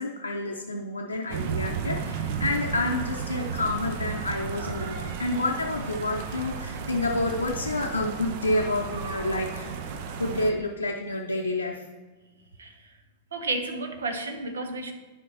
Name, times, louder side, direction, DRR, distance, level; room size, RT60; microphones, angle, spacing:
voice 1, 0.0-9.7 10.2-11.8, left 2 dB, 80° left, -1 dB, 0.6 m, -29 dB
sound 1, 1.3-10.5, right 6 dB, 50° right, 0.6 m, -33 dB
voice 2, 12.6-12.9 13.3-14.9, right 2 dB, 70° right, 6 dB, 0.9 m, -32 dB
11.5 x 5.2 x 2.9 m, 1.3 s
figure-of-eight pair, 90°, 0 cm